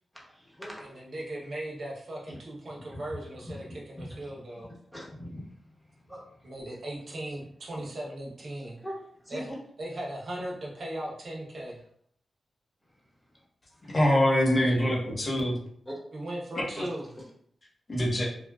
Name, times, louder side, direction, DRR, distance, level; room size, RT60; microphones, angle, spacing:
voice 1, 0.1-0.8 2.9-3.0 3.5-3.6 4.0-4.2 4.6-5.5 6.1-6.2 7.7-7.9 8.8-9.0 9.2-9.6 14.7-15.0 15.8-15.9, equal, 5° left, -4 dB, 1.1 m, -41 dB
voice 2, 0.8-4.7 6.4-8.8 9.3-9.5 9.8-11.8 16.1-17.1, right 1 dB, 65° right, -3 dB, 0.8 m, -38 dB
voice 3, 13.9-15.5 16.8-16.9 17.9-18.2, equal, 45° left, -3 dB, 0.9 m, -24 dB
3.2 x 2.3 x 2.3 m, 0.65 s
cardioid pair, 65°, 0 cm